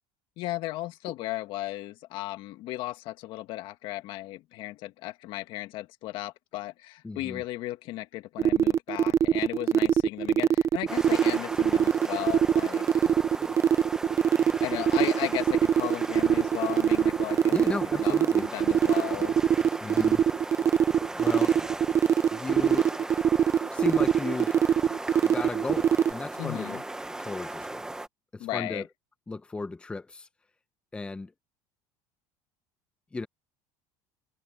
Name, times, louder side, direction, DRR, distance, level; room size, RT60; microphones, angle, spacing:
voice 1, 0.4-13.1 14.4-19.4 26.4-26.8 28.4-28.8, left 16 dB, 55° left, 1.7 m, -35 dB
voice 2, 7.0-7.4 17.5-18.5 19.8-20.2 21.2-21.6 22.3-22.9 23.7-24.6 25.2-26.8 27.2-27.9 28.3-28.9 29.3-30.3 30.9-31.3 33.1-33.3, left 3 dB, 10° left, 0.9 m, -35 dB
sound 1, 8.4-26.1, right 9 dB, 30° right, 0.6 m, -22 dB
sound 2, 10.9-28.1, right 2 dB, 5° right, 1.4 m, -37 dB
cardioid pair, 140°, 10 cm